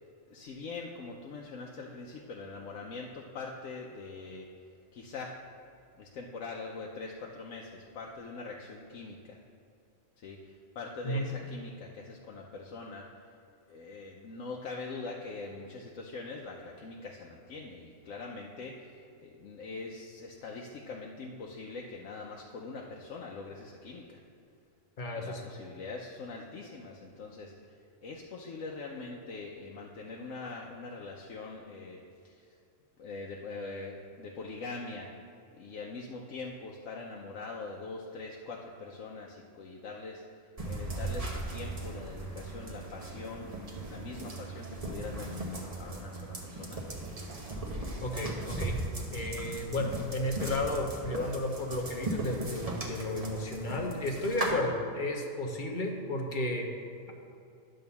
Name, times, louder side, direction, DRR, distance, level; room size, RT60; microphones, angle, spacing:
voice 1, 0.3-4.5 4.9-5.4 5.9-9.4 10.2-13.4 13.7-24.2 25.1-32.6 33.0-35.1 35.6-43.5 43.8-46.8, left 3 dB, 75° left, -1 dB, 1.1 m, -43 dB
voice 2, 25.0-25.4 48.0-48.8 49.1-56.7, left 1 dB, 40° left, 2 dB, 1.0 m, -33 dB
sound 1, 40.6-54.5, right 2 dB, 30° right, 1.0 m, -38 dB
10.5 x 3.8 x 6.9 m, 2.5 s
omnidirectional pair, 1.4 m